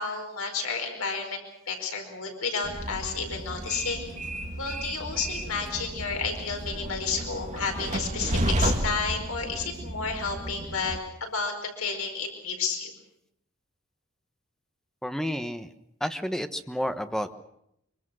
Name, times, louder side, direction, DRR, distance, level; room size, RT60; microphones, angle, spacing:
voice 1, 0.0-1.4 1.7-4.1 4.6-12.9, left 5 dB, 80° left, 4 dB, 4.9 m, -31 dB
Train, 2.6-11.0, right 1 dB, 35° right, 2.3 m, -32 dB
voice 2, 15.0-15.7 16.0-17.4, equal, ahead, 8 dB, 1.2 m, -30 dB
25.0 x 24.0 x 6.3 m, 0.76 s
head